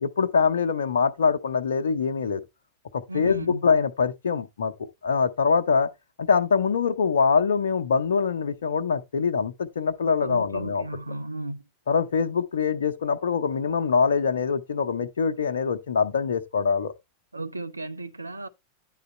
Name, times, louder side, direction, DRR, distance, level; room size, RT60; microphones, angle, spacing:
voice 1, 0.0-2.4 2.9-4.7 5.0-5.9 6.2-10.8 11.9-16.9, left 5 dB, 65° left, 0.8 m, -24 dB
voice 2, 3.1-3.7 10.2-11.7 17.3-18.5, right 2 dB, 80° right, 0.6 m, -34 dB
10.0 x 3.9 x 4.2 m
figure-of-eight pair, 90°, 0 cm